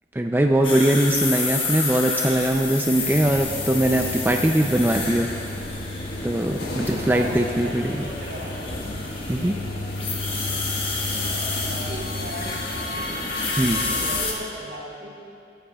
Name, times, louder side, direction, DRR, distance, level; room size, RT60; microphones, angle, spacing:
voice 1, 0.1-5.3 6.2-8.1 9.3-9.5 13.6-13.8, right 1 dB, 10° right, 3 dB, 0.4 m, -21 dB
sound 1, 0.6-14.3, left 4 dB, 30° left, 1.4 m, -30 dB
sound 2, 3.0-14.2, left 1 dB, 60° left, 1.6 m, -32 dB
voice 2, 6.8-9.6 11.6-13.1 13.9-15.1, equal, 75° right, -4 dB, 3.3 m, -37 dB
17.0 x 14.5 x 2.3 m, 2.5 s
head